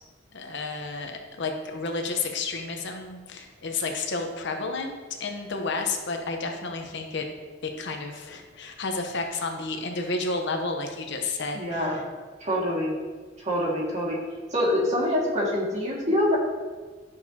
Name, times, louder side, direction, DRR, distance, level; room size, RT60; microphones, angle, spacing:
voice 1, 0.3-7.3 7.6-12.0, left 3 dB, 65° left, 4 dB, 0.9 m, -31 dB
voice 2, 11.5-12.0 12.4-12.9 13.4-14.2 14.5-16.4, left 1 dB, 35° right, -4 dB, 2.0 m, -25 dB
10.5 x 6.5 x 2.8 m, 1.4 s
head